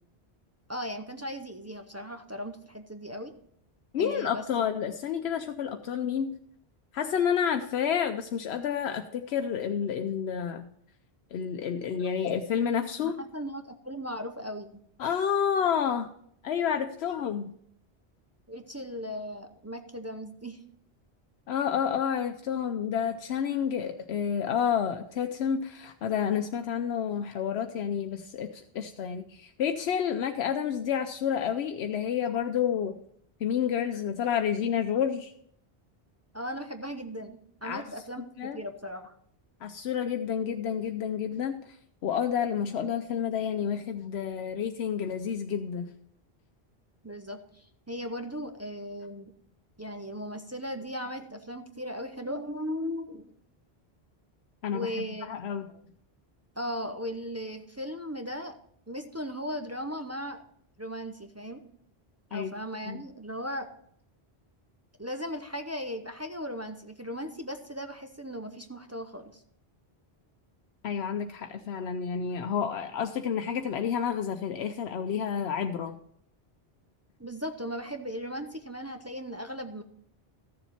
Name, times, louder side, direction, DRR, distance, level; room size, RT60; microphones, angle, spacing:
voice 1, 0.7-3.3 4.0-4.4 13.0-14.8 18.5-20.6 36.3-39.1 47.0-49.3 49.8-53.3 54.7-55.3 56.6-58.6 58.9-60.4 60.8-61.6 62.3-63.7 65.0-69.4 77.2-79.8, equal, 20° right, 6 dB, 0.6 m, -37 dB
voice 2, 3.9-6.3 6.9-10.7 11.3-13.2 15.0-16.1 16.4-17.5 21.5-33.0 33.4-35.3 37.6-37.8 38.4-38.6 39.6-41.8 42.0-45.9 54.6-55.7 62.3-62.5 62.9-63.0 70.8-75.9, left 8 dB, 80° left, 6 dB, 0.9 m, -29 dB
14.0 x 7.2 x 4.2 m, 0.68 s
omnidirectional pair, 1.1 m